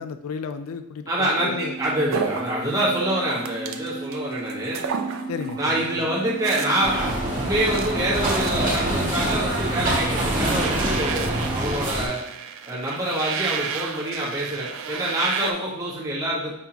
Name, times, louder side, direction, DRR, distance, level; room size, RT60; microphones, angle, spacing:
voice 1, 0.0-1.8 5.3-6.1 15.4-15.5, left 6 dB, 75° left, 10 dB, 0.3 m, -33 dB
voice 2, 1.1-4.8 5.6-12.2 12.7-16.5, right 1 dB, 15° right, -7 dB, 1.5 m, -26 dB
sound 1, 1.4-11.7, right 3 dB, 30° left, 0.8 m, -36 dB
sound 2, 2.1-4.2 4.5-5.7 6.0-15.5, right 6 dB, 65° right, 0.4 m, -33 dB
sound 3, 6.8-12.1, right 1 dB, 40° right, 1.4 m, -25 dB
5.2 x 3.5 x 2.9 m, 0.84 s
head